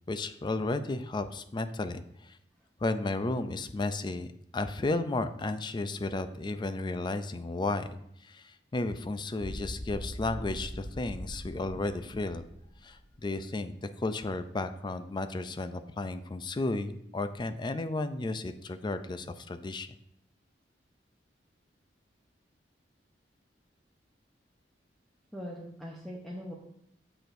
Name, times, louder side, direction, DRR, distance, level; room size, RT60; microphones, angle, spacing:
voice 1, 0.1-2.4 2.8-4.3 4.5-12.4 12.8-19.9, left 2 dB, 25° left, 11 dB, 0.4 m, -33 dB
sound 1, 9.4-13.3, equal, 25° right, 1.3 m, -41 dB
voice 2, 25.3-26.5, equal, ahead, -4 dB, 0.8 m, -41 dB
7.8 x 6.7 x 2.6 m, 0.73 s
head